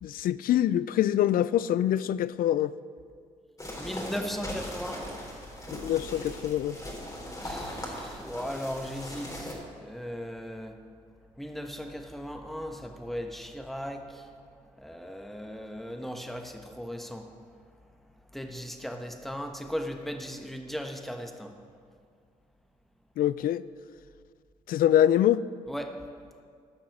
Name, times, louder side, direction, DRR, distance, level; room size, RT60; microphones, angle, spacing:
voice 1, 0.0-2.7 5.7-6.8 23.2-23.6 24.7-25.4, left 11 dB, 60° left, 17 dB, 0.4 m, -24 dB
sound 1, 3.6-9.5, left 1 dB, 20° left, 3.3 m, -39 dB
voice 2, 3.8-5.1 7.4-10.7 11.4-14.3 14.8-17.3 18.3-21.5 25.7-25.9, equal, ahead, 4 dB, 1.3 m, -37 dB
12.0 x 5.9 x 7.1 m, 2.1 s
hypercardioid pair, 50°, 16 cm